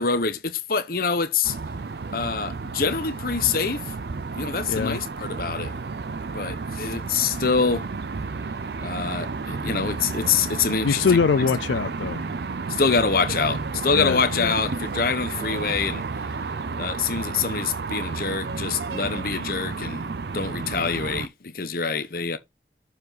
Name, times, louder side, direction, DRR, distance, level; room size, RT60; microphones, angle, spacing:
voice 1, 0.0-1.5 2.1-3.8 4.4-5.7 6.3-7.8 8.8-11.0 12.8-16.0 16.8-20.0 20.3-21.3 21.5-22.4, left 5 dB, 55° left, 0.9 m, -25 dB
sound 1, 1.4-21.3, right 4 dB, 65° right, 0.5 m, -32 dB
voice 2, 4.7-5.0 10.8-12.3 13.9-14.6, left 5 dB, 90° left, 0.4 m, -23 dB
7.0 x 4.9 x 4.0 m
head